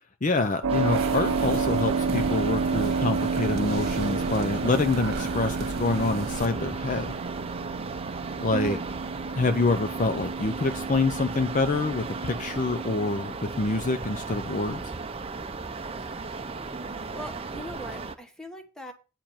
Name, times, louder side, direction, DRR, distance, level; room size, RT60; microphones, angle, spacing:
voice 1, 0.2-7.1 8.4-8.8 9.3-14.8, left 3 dB, 35° left, 10 dB, 0.5 m, -26 dB
Keyboard (musical), 0.6-13.1, right 5 dB, 80° right, 0.6 m, -31 dB
sound 1, 0.7-18.2, right 3 dB, 25° right, 0.6 m, -35 dB
sound 2, 0.9-6.5, right 2 dB, 45° right, 1.4 m, -36 dB
voice 2, 8.5-8.8 16.0-16.2 16.7-18.9, right 4 dB, 5° left, 5 dB, 1.2 m, -37 dB
9.0 x 4.9 x 7.2 m, 0.32 s
head